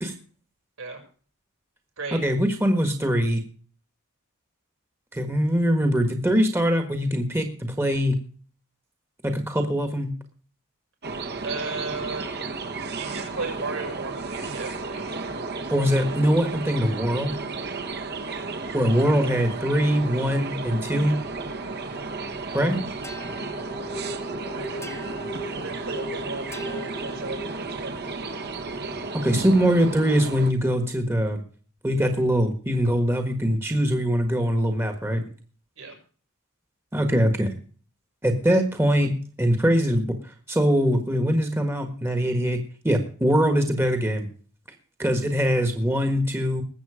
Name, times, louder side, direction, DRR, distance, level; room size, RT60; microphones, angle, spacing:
voice 1, 2.1-3.4 5.1-8.2 9.2-10.1 15.7-17.4 18.7-21.2 22.5-22.8 29.1-31.4 31.8-35.2 36.9-37.5 38.2-40.1 40.5-42.6 42.8-44.3 45.0-46.6, equal, 10° right, 6 dB, 1.5 m, -22 dB
sound 1, 11.0-30.5, right 3 dB, 50° right, 1.5 m, -33 dB
voice 2, 11.4-12.3 12.9-15.2 24.5-28.1 35.8-36.0, right 3 dB, 70° right, 2 dB, 6.5 m, -35 dB
sound 2, 23.0-27.8, equal, 10° left, 1.2 m, -38 dB
20.0 x 7.9 x 5.0 m, 0.43 s
head